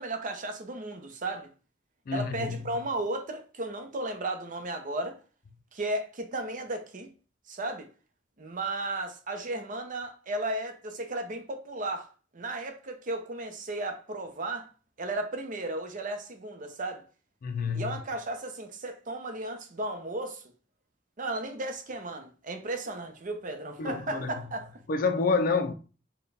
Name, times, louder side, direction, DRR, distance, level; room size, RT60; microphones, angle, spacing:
voice 1, 0.0-1.5 2.1-5.2 5.7-7.1 7.5-7.9 8.4-14.7 15.0-17.1 17.7-20.4 21.2-24.8, right 2 dB, 45° right, 0.6 m, -34 dB
voice 2, 2.1-2.6 17.4-18.0 23.8-24.3 24.9-25.7, left 4 dB, 50° left, 0.4 m, -28 dB
4.2 x 2.2 x 3.3 m
head